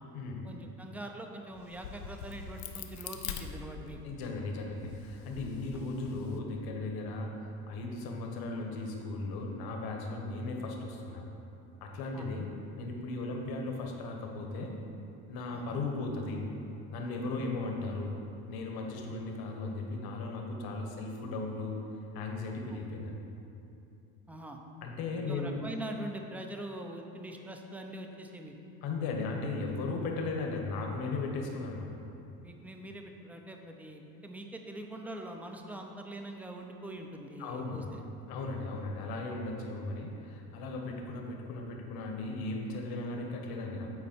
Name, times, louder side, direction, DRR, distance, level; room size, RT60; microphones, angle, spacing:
voice 1, 0.4-4.0 5.7-5.9 12.1-12.3 15.5-15.7 17.4-17.5 19.1-19.2 22.7-22.8 24.3-24.6 25.3-28.6 29.6-29.7 32.4-37.8, right 1 dB, 5° right, 3 dB, 0.4 m, -43 dB
Crack, 1.6-4.2 4.7-6.4, left 8 dB, 85° left, 0.7 m, -43 dB
voice 2, 4.0-11.2 11.8-12.5 12.8-14.7 15.3-16.4 16.9-18.1 18.5-21.8 22.1-23.2 24.8-25.6 28.8-31.9 37.4-37.9 38.3-43.9, left 3 dB, 55° left, 1 dB, 1.2 m, -36 dB
8.5 x 4.2 x 4.4 m, 2.8 s
supercardioid pair, 100°, 43 cm